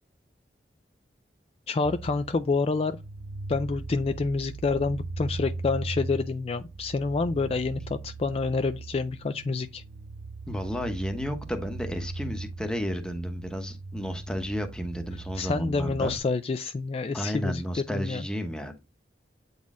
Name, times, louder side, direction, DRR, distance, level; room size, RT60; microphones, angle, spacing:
voice 1, 1.7-3.0 3.5-9.8 15.3-18.3, left 4 dB, 35° left, 0.3 m, -28 dB
sound 1, 1.8-16.2, right 3 dB, 65° right, 0.5 m, -39 dB
voice 2, 10.5-16.1 17.1-18.8, equal, 5° left, 0.9 m, -32 dB
8.4 x 4.1 x 3.7 m
head